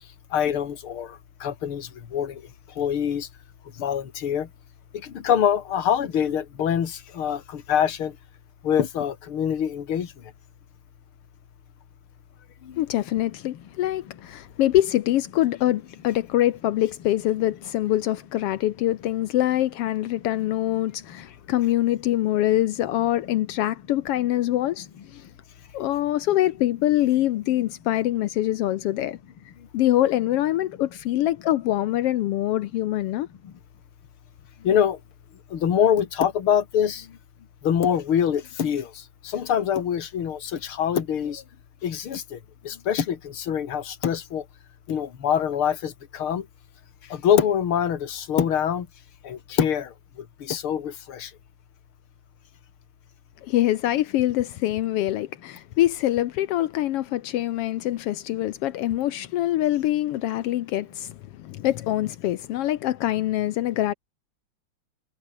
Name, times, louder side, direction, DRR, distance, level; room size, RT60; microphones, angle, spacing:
voice 1, 0.3-2.4 2.8-3.3 3.8-4.5 4.9-8.1 8.6-10.1 12.6-12.9 33.4-33.5 34.6-35.0 35.5-37.2 37.6-41.4 41.8-42.4 42.6-44.4 44.9-46.5 47.1-48.9 49.2-49.9 50.4-51.3, left 9 dB, 50° left, 2.6 m, -25 dB
voice 2, 12.8-25.2 25.7-29.2 29.7-33.3 53.4-63.9, left 14 dB, 75° left, 1.4 m, -24 dB
omnidirectional pair, 3.4 m